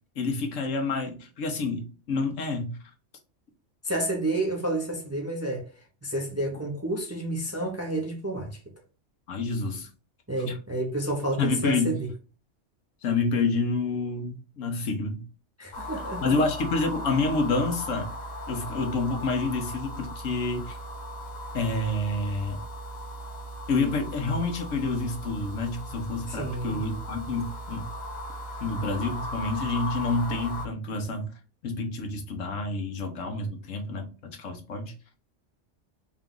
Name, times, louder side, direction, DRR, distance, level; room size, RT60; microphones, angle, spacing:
voice 1, 0.2-2.8 9.3-9.9 10.4-10.5 11.4-12.0 13.0-15.2 16.2-18.1 18.5-20.8 21.5-22.6 23.7-27.8 28.6-31.3 31.6-34.9, left 3 dB, 85° left, 1.3 m, -28 dB
voice 2, 3.8-5.7 6.0-8.6 10.3-12.0 15.6-16.3 26.3-26.8, right 1 dB, 15° right, 0.5 m, -30 dB
sound 1, 15.7-30.7, equal, 45° left, 0.6 m, -37 dB
3.9 x 2.4 x 3.7 m
omnidirectional pair, 1.3 m